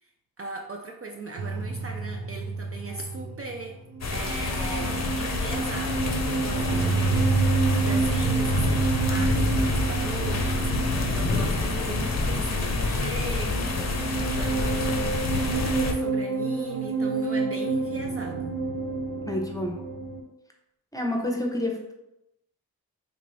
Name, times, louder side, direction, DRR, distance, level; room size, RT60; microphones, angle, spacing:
voice 1, 0.4-3.8 4.1-13.6 14.1-18.6, right 3 dB, 40° right, 2 dB, 0.4 m, -39 dB
sound 1, 1.4-20.2, right 3 dB, 85° right, 0.6 m, -29 dB
sound 2, 4.0-15.9, left 3 dB, 45° left, 0.6 m, -28 dB
voice 2, 19.3-19.8 20.9-21.9, left 1 dB, 10° left, 1 dB, 0.7 m, -28 dB
3.4 x 2.5 x 3.3 m, 0.90 s
cardioid pair, 50°, 37 cm